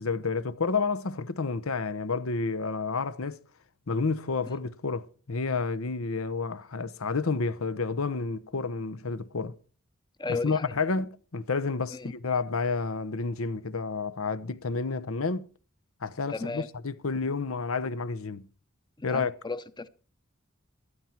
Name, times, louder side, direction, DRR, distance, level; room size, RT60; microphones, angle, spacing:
voice 1, 0.0-3.4 3.9-9.5 10.3-15.5 16.0-18.5 19.0-19.3, left 4 dB, 80° left, 0.9 m, -30 dB
voice 2, 10.2-10.7 11.9-12.1 16.3-16.7 19.0-19.9, left 3 dB, 20° left, 0.8 m, -34 dB
15.5 x 11.5 x 4.5 m
head